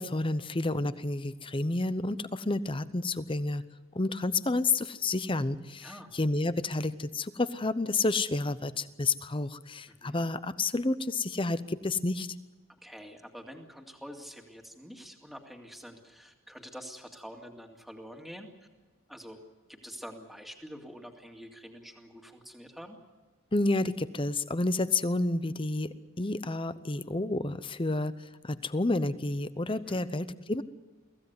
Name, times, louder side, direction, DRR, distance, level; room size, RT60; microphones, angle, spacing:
voice 1, 0.0-3.6 3.9-12.3 23.5-30.6, left 2 dB, 25° left, 14 dB, 0.8 m, -30 dB
voice 2, 5.8-6.1 9.9-10.2 12.8-18.5 19.1-19.4 19.7-23.0 29.7-30.0, equal, ahead, 2 dB, 2.2 m, -46 dB
24.0 x 16.0 x 9.6 m, 1.2 s
head